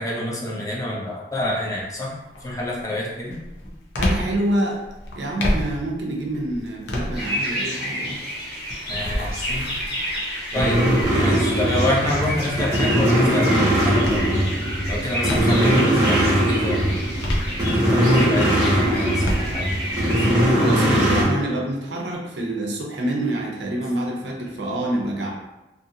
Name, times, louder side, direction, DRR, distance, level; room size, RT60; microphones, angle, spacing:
voice 1, 0.0-2.1 2.4-3.4 8.9-9.7 10.5-10.8 11.2-14.4 14.9-17.0 17.8-19.7 20.1-20.5, left 1 dB, 20° left, -4 dB, 0.5 m, -27 dB
sound 1, 1.4-1.8 2.3-15.8 16.3-18.1 18.5-21.1, left 1 dB, 90° left, 0.6 m, -31 dB
voice 2, 4.0-4.8 5.2-8.2 11.1-11.4 20.6-25.3, right 1 dB, 75° right, -1 dB, 0.6 m, -26 dB
sound 2, 7.1-20.4, equal, 65° left, 1.3 m, -30 dB
sound 3, 10.5-21.2, equal, 20° right, 1.0 m, -20 dB
2.7 x 2.5 x 2.7 m, 1.0 s
head